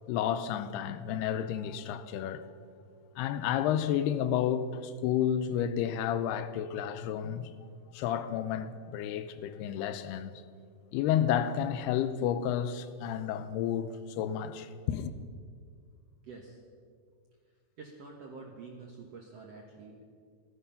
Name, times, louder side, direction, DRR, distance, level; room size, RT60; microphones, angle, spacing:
voice 1, 0.1-2.5 3.2-7.5 7.9-10.3 10.9-15.2, left 9 dB, 85° left, 2.7 m, -31 dB
voice 2, 16.2-16.6 17.8-20.0, right 4 dB, 65° right, 1.6 m, -47 dB
16.0 x 14.0 x 5.6 m
omnidirectional pair, 4.6 m